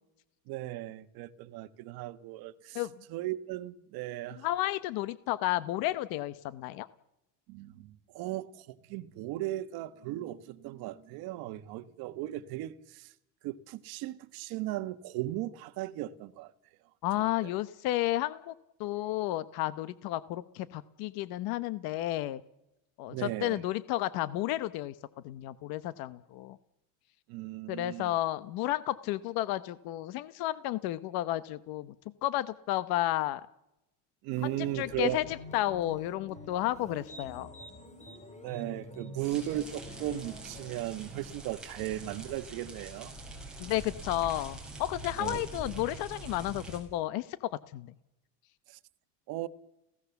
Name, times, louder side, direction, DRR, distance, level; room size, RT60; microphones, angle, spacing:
voice 1, 0.5-4.5 7.5-13.1 13.4-16.5 17.2-17.5 23.1-23.6 27.3-28.2 34.2-35.2 38.4-43.1 45.2-45.4 48.7-48.8 49.3-49.5, right 15 dB, 75° right, 1.3 m, -37 dB
voice 2, 4.4-6.9 17.0-18.5 18.8-22.4 23.0-24.9 25.2-26.6 27.7-31.9 32.2-33.4 34.4-37.5 43.6-47.9, left 15 dB, 70° left, 1.0 m, -32 dB
sound 1, 34.3-41.3, left 1 dB, 20° left, 3.2 m, -48 dB
sound 2, 39.2-46.8, right 2 dB, ahead, 5.4 m, -44 dB
29.0 x 17.0 x 7.1 m
cardioid pair, 155°, 37 cm